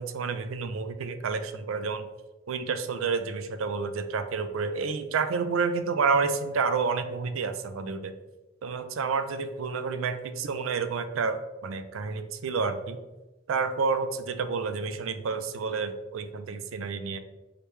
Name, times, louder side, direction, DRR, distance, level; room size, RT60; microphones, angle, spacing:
voice 1, 0.0-2.1 2.5-8.1 8.6-13.0 13.5-17.2, right 5 dB, 85° right, 9 dB, 0.4 m, -29 dB
4.9 x 3.3 x 3.1 m, 1.1 s
head